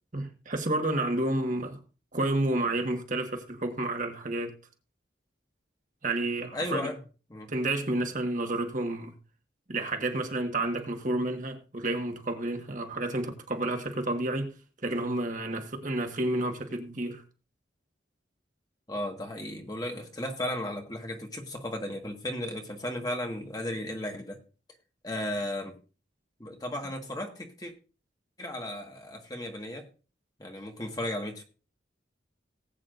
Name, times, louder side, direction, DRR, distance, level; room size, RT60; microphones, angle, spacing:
voice 1, 0.1-1.8 2.1-4.5 6.0-6.9 7.5-9.1 9.7-14.5 14.8-17.2, right 2 dB, 45° right, 1.5 m, -30 dB
voice 2, 6.5-7.0 7.3-7.5 11.1-11.2 18.9-24.4 25.0-25.7 26.4-27.7 28.4-29.9 30.4-31.4, left 1 dB, 20° left, 1.6 m, -35 dB
19.0 x 8.6 x 2.6 m
head